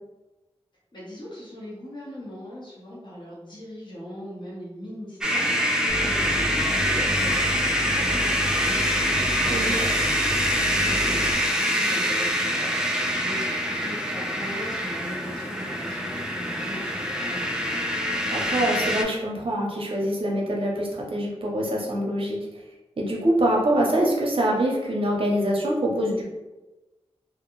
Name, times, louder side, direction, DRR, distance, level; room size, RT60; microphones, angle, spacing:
voice 1, 0.9-10.0 10.3-17.7, equal, 45° left, -6 dB, 1.1 m, -40 dB
sound 1, 5.2-19.0, equal, 5° right, 0.4 m, -25 dB
Mechanisms, 5.9-11.3, equal, 60° left, 0.7 m, -32 dB
voice 2, 18.3-22.4 23.0-26.2, right 1 dB, 55° right, -2 dB, 0.7 m, -24 dB
2.4 x 2.3 x 3.0 m, 1.1 s
wide cardioid pair, 75°, 11 cm